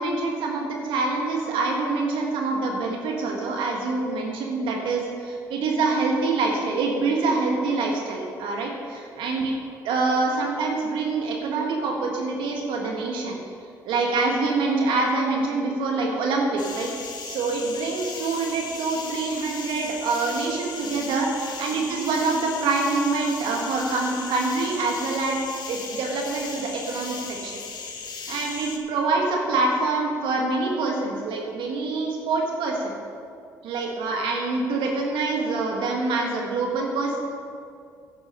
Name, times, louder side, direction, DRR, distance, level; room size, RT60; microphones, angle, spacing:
voice 1, 0.0-9.5 9.8-13.4 13.8-16.9 17.2-25.4 25.7-27.2 27.4-27.6 28.3-32.9 33.6-37.2, right 3 dB, 75° right, 0 dB, 1.6 m, -25 dB
sound 1, 16.6-28.8, left 5 dB, 55° left, 1.3 m, -37 dB
10.5 x 8.5 x 5.4 m, 2.3 s
hypercardioid pair, 60°, 9 cm